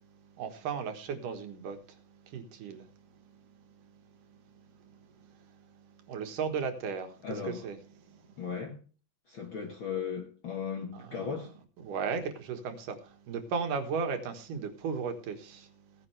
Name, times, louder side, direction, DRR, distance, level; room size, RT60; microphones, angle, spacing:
voice 1, 0.4-1.8 2.3-2.9 5.2-5.3 6.1-7.8 10.9-11.4 11.8-15.7, right 5 dB, 70° right, 3.0 m, -35 dB
voice 2, 7.2-7.7 8.4-8.8 9.3-11.5, left 6 dB, 55° left, 1.5 m, -36 dB
17.0 x 10.0 x 3.3 m
omnidirectional pair, 3.9 m